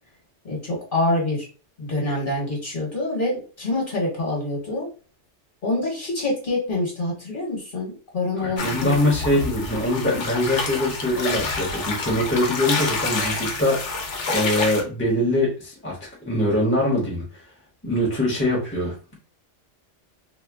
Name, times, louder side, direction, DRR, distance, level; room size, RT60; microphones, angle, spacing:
voice 1, 0.4-1.5 1.8-4.9 5.6-9.0, left 2 dB, 45° left, -3 dB, 1.4 m, -26 dB
voice 2, 8.4-17.4 17.8-18.9, left 1 dB, 10° left, -3 dB, 0.9 m, -23 dB
sound 1, 8.6-14.8, left 3 dB, 75° left, 1.0 m, -28 dB
2.8 x 2.2 x 3.4 m, 0.36 s
omnidirectional pair, 1.2 m